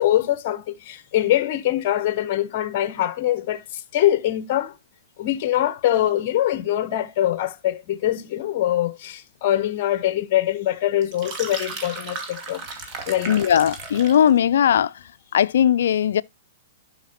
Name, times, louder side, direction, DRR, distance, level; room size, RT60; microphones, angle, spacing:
voice 1, 0.0-4.7 5.2-12.6 13.1-13.3, left 12 dB, 50° left, 0.9 m, -23 dB
sound 1, 11.0-14.3, right 4 dB, 35° right, 2.2 m, -35 dB
voice 2, 13.3-14.9 15.3-16.2, left 9 dB, 75° left, 0.4 m, -18 dB
11.5 x 5.8 x 2.8 m
hypercardioid pair, 135°, 0 cm